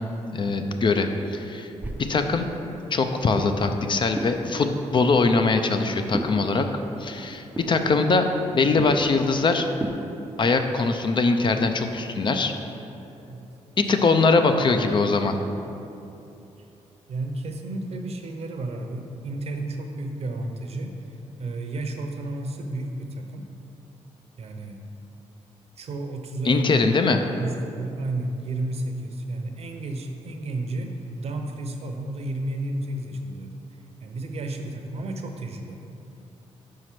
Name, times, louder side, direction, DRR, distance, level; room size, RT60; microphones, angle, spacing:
voice 1, 0.3-1.7 2.0-2.5 2.9-6.7 7.0-8.3 8.5-9.7 10.4-12.5 13.8-15.4 26.5-27.2, left 3 dB, 40° left, 6 dB, 0.4 m, -22 dB
sound 1, 1.8-10.2, right 1 dB, 15° right, 0.4 m, -37 dB
voice 2, 13.3-13.8 17.1-21.0 21.4-23.5 24.4-24.9 25.8-27.0 27.4-33.5 34.0-35.9, right 2 dB, 55° right, 4 dB, 0.7 m, -32 dB
5.1 x 4.7 x 5.8 m, 2.8 s
cardioid pair, 95°, 12 cm